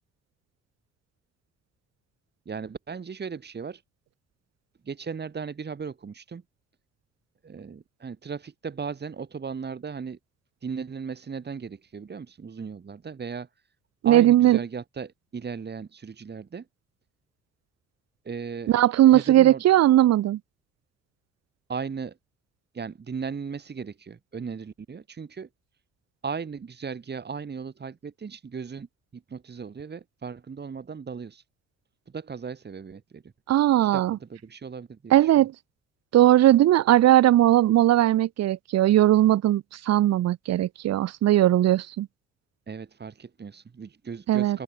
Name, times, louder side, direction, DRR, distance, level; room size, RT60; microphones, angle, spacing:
voice 1, 2.4-3.8 4.8-6.4 7.4-10.2 10.6-13.5 14.0-16.7 18.2-18.7 19.1-19.6 21.7-22.2 22.7-25.5 26.2-28.9 29.1-31.4 32.1-33.3 33.9-35.5 42.7-44.6, right 5 dB, 35° right, 3.2 m, -36 dB
voice 2, 14.0-14.6 18.7-20.4 33.5-34.2 35.1-35.5 36.1-42.1 44.3-44.6, right 13 dB, 55° right, 2.1 m, -19 dB
open air
figure-of-eight pair, 50°, 31 cm